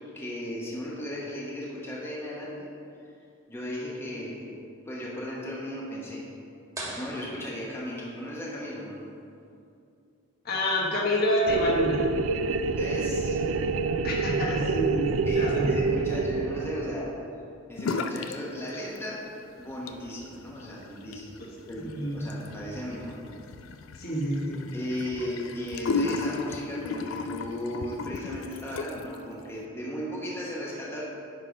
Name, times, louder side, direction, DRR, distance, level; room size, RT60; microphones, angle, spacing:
voice 1, 0.0-2.7 3.5-4.6 4.8-6.2 7.0-9.0 12.7-13.4 15.2-17.1 17.7-19.2 19.6-21.3 21.7-23.2 24.7-31.0, equal, 10° left, -5 dB, 1.0 m, -36 dB
sound 1, 6.7-8.4, right 1 dB, 15° right, 1.5 m, -41 dB
voice 2, 10.4-12.0 14.0-15.7 21.8-22.3 24.0-24.7, equal, 50° left, -2 dB, 1.2 m, -27 dB
sound 2, 11.5-17.2, right 4 dB, 90° right, 0.3 m, -27 dB
sound 3, 17.8-18.4 18.7-19.3 19.7-29.2, left 4 dB, 80° left, 0.4 m, -35 dB
9.5 x 3.8 x 5.0 m, 2.5 s
head